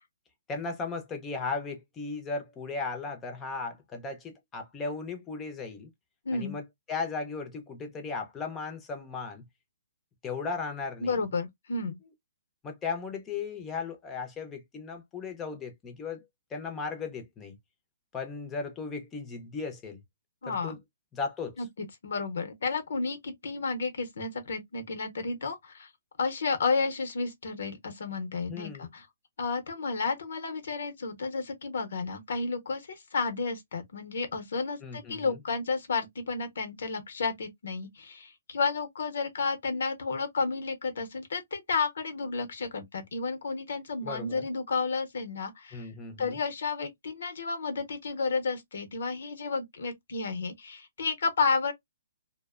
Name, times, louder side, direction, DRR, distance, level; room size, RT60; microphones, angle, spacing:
voice 1, 0.5-5.9 6.3-6.6 6.9-9.4 10.2-11.2 12.6-16.2 16.5-17.6 18.1-20.0 20.4-20.8 21.1-21.5 28.5-28.9 34.8-35.4 44.0-44.5 45.7-46.4, left 4 dB, 15° left, 0.6 m, -36 dB
voice 2, 6.2-6.6 11.0-12.0 20.4-20.7 21.6-25.9 26.2-29.1 29.4-45.9 46.2-51.7, left 4 dB, 70° left, 0.8 m, -32 dB
2.5 x 2.1 x 2.4 m
hypercardioid pair, 160°, 0 cm